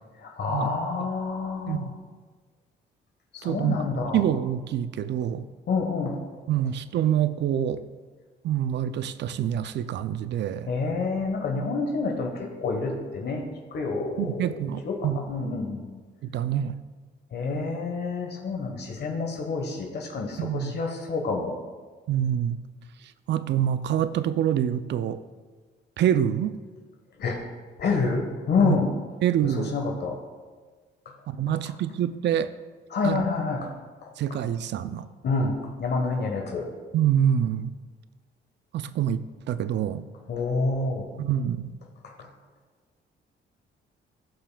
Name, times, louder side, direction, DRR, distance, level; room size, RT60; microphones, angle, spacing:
voice 1, 0.2-1.9 3.3-4.2 5.7-6.2 10.7-13.5 13.7-14.3 14.8-15.8 17.3-21.5 27.2-27.4 27.8-28.9 29.6-30.1 32.9-33.7 35.2-35.5 35.8-36.7 40.3-41.1 42.0-42.1, left 4 dB, 60° left, 2 dB, 1.2 m, -28 dB
voice 2, 3.4-3.8 4.1-5.4 6.5-7.8 8.4-10.7 14.2-15.2 16.2-16.7 20.4-20.7 22.1-22.6 23.3-25.2 26.0-26.6 28.6-28.8 29.2-29.7 31.3-32.5 33.0-33.3 34.2-35.1 36.9-37.7 38.7-40.0 41.2-41.7, right 10 dB, 65° right, 14 dB, 0.4 m, -26 dB
16.5 x 5.6 x 2.3 m, 1.4 s
cardioid pair, 90°, 20 cm